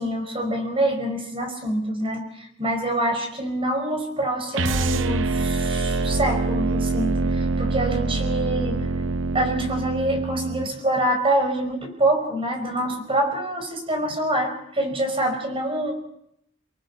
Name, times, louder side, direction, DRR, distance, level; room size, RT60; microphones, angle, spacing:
voice 1, 0.0-8.9 9.3-15.9, right 1 dB, 30° right, 5 dB, 5.3 m, -26 dB
sound 1, 4.5-10.7, right 3 dB, 75° right, 0.7 m, -25 dB
25.5 x 22.5 x 5.6 m, 0.75 s
head